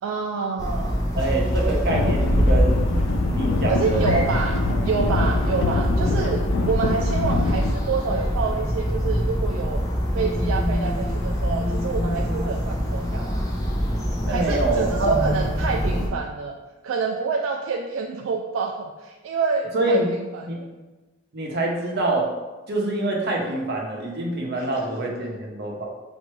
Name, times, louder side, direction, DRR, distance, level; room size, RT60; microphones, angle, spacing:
voice 1, 0.0-1.0 3.7-4.6 4.8-9.8 10.1-13.5 14.3-16.5 16.8-20.7 24.6-24.8, right 5 dB, 80° right, 2 dB, 0.3 m, -27 dB
sound 1, 0.6-16.1, equal, 20° left, 0.6 m, -24 dB
voice 2, 1.2-2.8 3.2-4.2 14.2-15.1 19.7-20.1 20.5-20.6 21.3-22.3 22.7-25.8, right 2 dB, 55° right, -1 dB, 0.7 m, -25 dB
sound 2, 1.9-7.7, left 4 dB, 70° left, 0.3 m, -26 dB
4.4 x 2.6 x 3.1 m, 1.2 s
head